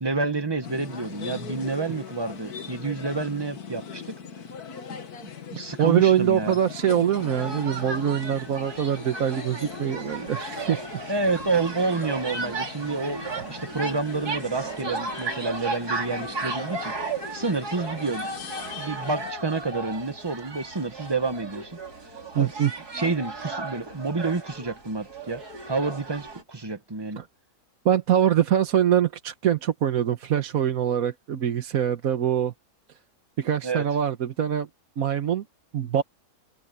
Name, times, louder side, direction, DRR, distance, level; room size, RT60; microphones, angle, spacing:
voice 1, 0.0-4.2 5.2-6.6 11.1-16.9 17.3-18.3 18.7-21.8 22.4-22.5 22.9-27.2 33.6-33.8, right 3 dB, 15° right, 1.2 m, -29 dB
sound 1, 0.6-19.3, left 6 dB, 75° left, 2.0 m, -41 dB
voice 2, 5.6-11.0 22.3-22.7 27.2-27.3 27.8-32.5 33.4-34.7 35.0-35.4 35.7-36.0, right 9 dB, 65° right, 1.5 m, -24 dB
sound 2, 7.1-26.4, right 3 dB, 80° right, 4.6 m, -35 dB
omnidirectional pair, 1.6 m